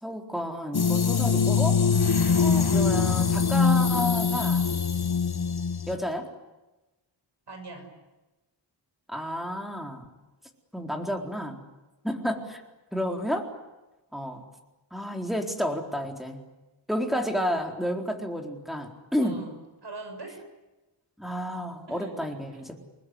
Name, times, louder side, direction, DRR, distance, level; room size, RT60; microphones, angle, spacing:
voice 1, 0.0-1.8 2.3-4.7 5.9-6.3 9.1-10.1 10.7-11.6 12.0-12.6 12.9-13.5 14.1-14.4 14.9-16.4 16.9-19.4 21.2-22.8, equal, ahead, 3 dB, 4.1 m, -31 dB
sound 1, 0.7-5.9, left 5 dB, 60° left, 1.4 m, -23 dB
voice 2, 7.5-7.9 19.2-19.5 19.8-20.4 21.9-22.7, right 3 dB, 70° right, 5 dB, 6.0 m, -42 dB
28.5 x 20.5 x 9.7 m, 1.1 s
wide cardioid pair, 95°, 44 cm